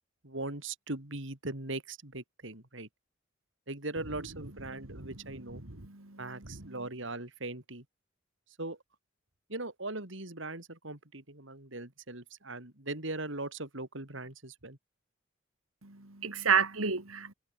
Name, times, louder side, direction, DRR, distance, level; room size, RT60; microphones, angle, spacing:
voice 1, 0.2-2.9 3.7-5.6 6.2-7.8 8.6-8.8 9.5-14.8, right 2 dB, 60° right, 3.3 m, -40 dB
voice 2, 5.6-6.7 15.8-17.3, right 6 dB, 80° right, 2.7 m, -32 dB
head